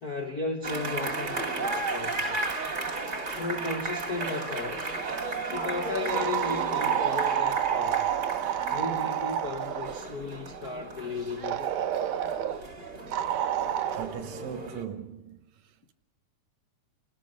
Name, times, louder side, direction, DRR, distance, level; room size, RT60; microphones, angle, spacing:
voice 1, 0.0-2.4 3.3-4.8 5.5-8.1 8.7-11.7, left 3 dB, 55° left, 1.1 m, -35 dB
sound 1, 0.6-14.8, right 3 dB, 25° right, 2.1 m, -34 dB
sound 2, 6.1-10.1 11.4-12.6 13.1-14.1, right 10 dB, 90° right, 2.5 m, -29 dB
voice 2, 13.9-15.4, right 8 dB, 70° right, 2.2 m, -38 dB
27.5 x 18.0 x 5.4 m
omnidirectional pair, 3.6 m